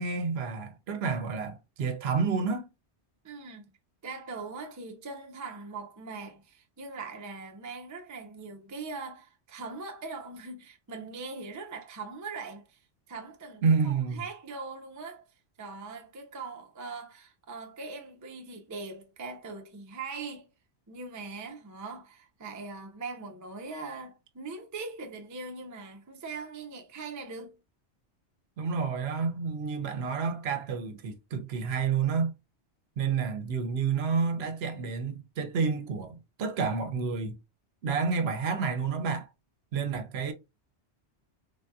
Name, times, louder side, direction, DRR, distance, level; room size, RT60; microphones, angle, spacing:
voice 1, 0.0-2.7 13.6-14.2 28.6-32.3 33.0-37.4 37.8-39.3 39.7-40.3, right 5 dB, 70° right, 0.8 m, -29 dB
voice 2, 3.2-3.7 4.0-12.8 13.1-15.3 15.6-20.5 20.9-27.6, right 4 dB, 30° right, 0.3 m, -41 dB
3.3 x 2.7 x 2.2 m
omnidirectional pair, 1.1 m